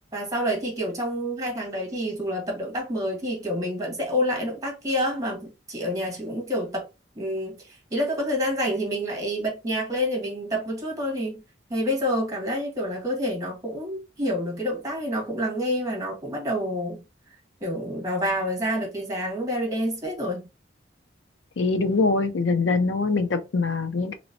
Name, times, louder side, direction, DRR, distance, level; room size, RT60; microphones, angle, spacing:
voice 1, 0.1-6.9 7.2-11.4 11.7-17.0 17.6-20.5, equal, 20° right, 1.3 m, -28 dB
voice 2, 21.6-24.2, left 3 dB, 80° left, 0.5 m, -23 dB
3.0 x 2.9 x 2.6 m
head